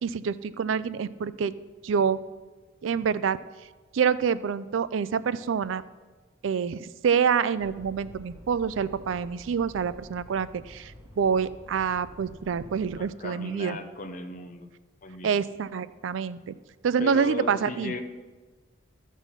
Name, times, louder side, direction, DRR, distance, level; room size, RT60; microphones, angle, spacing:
voice 1, 0.0-1.5 1.8-2.2 2.8-3.4 3.9-5.8 6.4-13.8 15.2-16.5 16.8-17.9, right 6 dB, 85° right, 16 dB, 0.4 m, -27 dB
sound 1, 7.6-13.0, equal, 20° right, 2.4 m, -49 dB
voice 2, 13.0-14.7 15.0-15.4 17.0-18.0, left 2 dB, 45° left, 7 dB, 0.8 m, -36 dB
12.5 x 6.3 x 5.6 m, 1.3 s
head